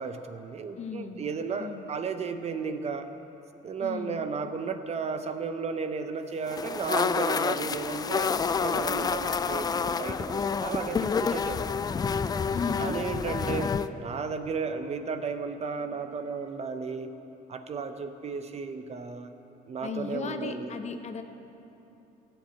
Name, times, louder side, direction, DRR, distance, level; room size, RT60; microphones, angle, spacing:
voice 1, 0.0-3.1 3.6-11.8 12.8-17.2 17.5-19.3 19.7-20.7, right 5 dB, 40° right, 8 dB, 0.8 m, -34 dB
voice 2, 0.8-1.9 3.8-4.3 12.5-13.0 19.8-21.2, left 5 dB, 40° left, 7 dB, 0.9 m, -36 dB
sound 1, 6.5-13.9, left 5 dB, 25° left, 0.3 m, -28 dB
14.5 x 7.9 x 8.5 m, 3.0 s
cardioid pair, 110°, 17 cm